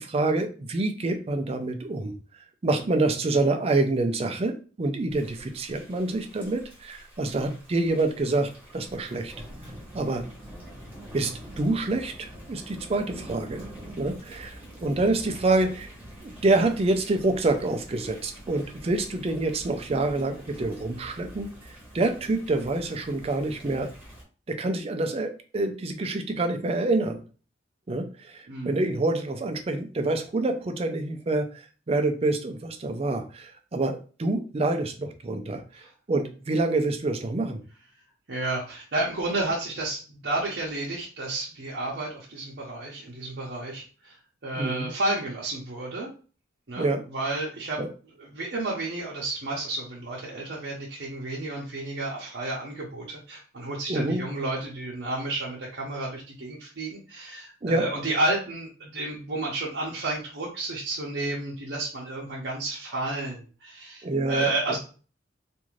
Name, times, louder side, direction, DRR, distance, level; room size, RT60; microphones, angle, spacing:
voice 1, 0.0-2.1 2.6-9.3 9.9-10.2 11.1-11.3 11.6-13.7 14.0-15.9 16.2-23.9 24.5-27.2 27.9-37.6 44.6-44.9 46.8-47.0 47.8-47.9 53.9-54.2 57.6-57.9 64.0-64.5, right 2 dB, 35° right, 6 dB, 0.4 m, -27 dB
Thunder / Rain, 5.1-24.2, equal, 10° right, 1.0 m, -45 dB
voice 2, 28.5-28.8 35.8-35.9 38.3-46.1 46.7-47.8 48.2-64.8, right 2 dB, 70° right, -4 dB, 0.7 m, -31 dB
2.6 x 2.4 x 3.1 m, 0.37 s
head